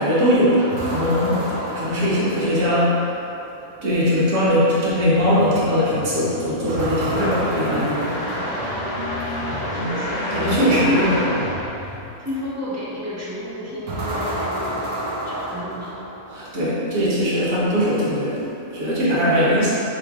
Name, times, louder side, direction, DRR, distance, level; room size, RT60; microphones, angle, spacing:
voice 1, 0.0-3.0 3.8-8.1 10.3-11.1 16.3-19.8, equal, 60° right, -9 dB, 1.4 m, -20 dB
sound 1, 0.7-3.0 6.7-9.2 13.9-16.5, right 1 dB, 80° right, 1.2 m, -30 dB
sound 2, 4.9-12.4, left 1 dB, 45° left, 1.1 m, -29 dB
voice 2, 8.3-8.8 9.6-11.4 12.2-14.8 15.2-16.0, left 2 dB, 25° right, -8 dB, 0.3 m, -31 dB
3.8 x 3.2 x 3.6 m, 2.8 s
omnidirectional pair, 1.5 m